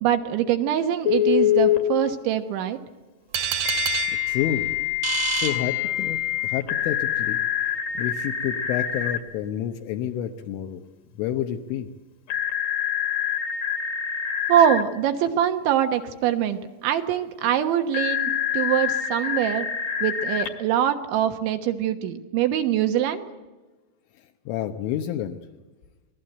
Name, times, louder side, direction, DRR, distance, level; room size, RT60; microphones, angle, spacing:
voice 1, 0.0-2.8 14.5-19.7 20.0-23.3, right 10 dB, 70° right, 7 dB, 3.3 m, -23 dB
Telephone, 1.1-1.8 3.6-9.2 12.3-14.8 17.9-20.5, left 10 dB, 55° left, 3.0 m, -25 dB
sound 1, 3.3-6.3, right 8 dB, 50° right, 2.6 m, -29 dB
voice 2, 4.1-4.7 5.3-6.2 6.4-7.4 8.0-10.8 11.1-11.9 24.2-25.4, left 10 dB, 75° left, 4 dB, 3.5 m, -29 dB
27.0 x 20.0 x 8.0 m, 1.2 s
omnidirectional pair, 5.9 m